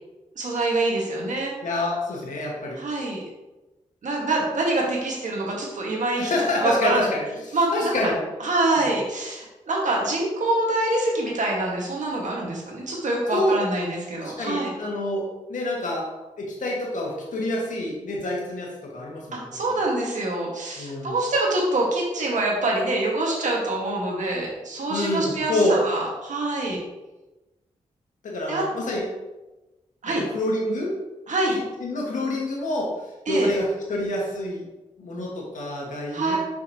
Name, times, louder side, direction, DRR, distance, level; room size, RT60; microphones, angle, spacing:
voice 1, 0.4-1.5 2.8-3.2 4.0-6.3 6.6-7.1 7.5-8.0 8.4-14.7 19.3-26.8 28.5-28.6 30.0-30.3 31.3-31.6 33.3-33.5 36.1-36.4, right 2 dB, 70° right, -2 dB, 1.9 m, -25 dB
voice 2, 1.6-2.8 6.2-8.2 8.8-8.9 13.3-13.6 14.2-16.1 16.4-19.6 20.8-21.2 24.9-25.8 28.2-29.0 30.1-30.9 31.8-32.9 33.3-34.7 35.0-36.4, left 1 dB, 75° left, -2 dB, 1.9 m, -27 dB
6.7 x 5.7 x 3.1 m, 1.1 s
cardioid pair, 50°, 13 cm